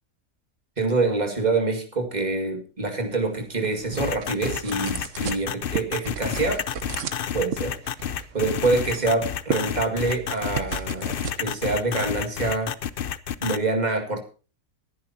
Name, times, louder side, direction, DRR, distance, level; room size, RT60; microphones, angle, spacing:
voice 1, 0.8-6.6 7.3-7.8 8.3-12.7 13.4-14.2, right 3 dB, 30° right, 4 dB, 2.4 m, -26 dB
sound 1, 2.8-13.0, right 6 dB, 55° right, 1.4 m, -37 dB
sound 2, 4.0-13.6, left 9 dB, 50° left, 0.7 m, -30 dB
21.0 x 10.5 x 2.9 m, 0.34 s
omnidirectional pair, 1.6 m